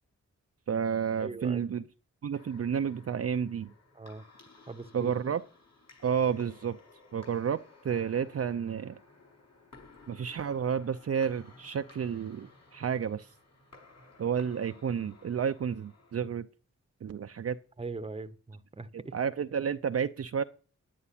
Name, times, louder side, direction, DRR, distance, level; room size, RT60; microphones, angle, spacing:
voice 1, 0.7-1.8 2.2-3.7 4.9-5.4 6.0-6.8 7.1-9.0 10.1-13.3 14.2-16.5 17.0-17.6 19.1-20.4, right 7 dB, 55° right, 0.6 m, -31 dB
voice 2, 1.2-1.7 3.9-4.2 4.7-5.1 17.8-19.2, right 3 dB, 20° right, 0.9 m, -40 dB
sound 1, 2.3-16.3, left 3 dB, 60° left, 6.0 m, -56 dB
11.0 x 9.8 x 5.7 m
wide cardioid pair, 120°, 30 cm